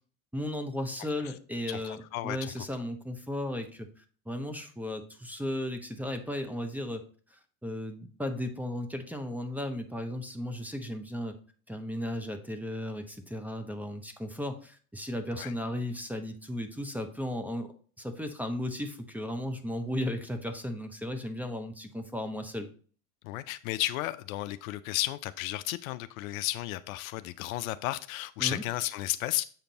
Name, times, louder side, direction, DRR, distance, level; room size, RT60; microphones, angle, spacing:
voice 1, 0.3-7.0 7.3-11.4 11.7-22.7 28.4-28.6, left 1 dB, 5° right, 0.7 m, -35 dB
voice 2, 1.7-2.6 15.3-15.5 23.2-29.4, left 16 dB, 65° left, 0.5 m, -33 dB
7.3 x 5.1 x 2.8 m
hypercardioid pair, 85°, 45 cm